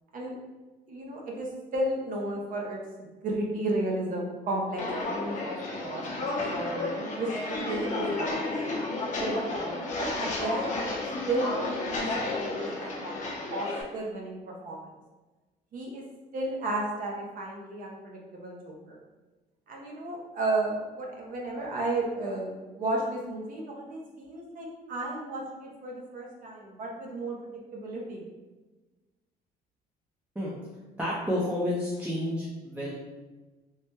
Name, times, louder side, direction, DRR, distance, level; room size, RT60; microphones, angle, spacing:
voice 1, 0.9-2.8 3.2-4.8 5.1-8.7 9.2-10.9 11.3-11.6 12.0-13.7 13.9-14.9 15.7-16.0 16.3-19.0 19.7-28.2, right 2 dB, 55° right, -1 dB, 0.7 m, -33 dB
Walk footsteps, 4.8-13.8, left 2 dB, 45° left, 0.6 m, -32 dB
voice 2, 31.0-32.9, left 1 dB, 10° right, -7 dB, 0.5 m, -30 dB
3.2 x 2.1 x 2.9 m, 1.2 s
cardioid pair, 110°, 17 cm